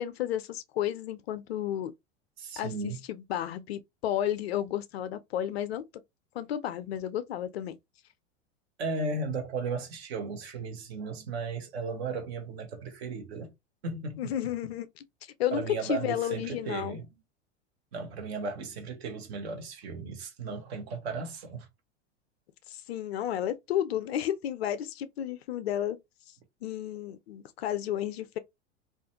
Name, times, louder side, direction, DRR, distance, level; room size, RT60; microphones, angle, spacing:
voice 1, 0.0-1.9 2.6-5.8 6.3-7.8 14.2-15.0 15.4-17.0 22.7-26.0 26.6-28.4, left 11 dB, 60° left, 0.5 m, -32 dB
voice 2, 2.4-3.0 8.8-13.5 13.8-14.3 15.5-17.1 17.9-21.7, right 4 dB, 60° right, 0.9 m, -35 dB
2.4 x 2.2 x 2.7 m
figure-of-eight pair, 90°, 36 cm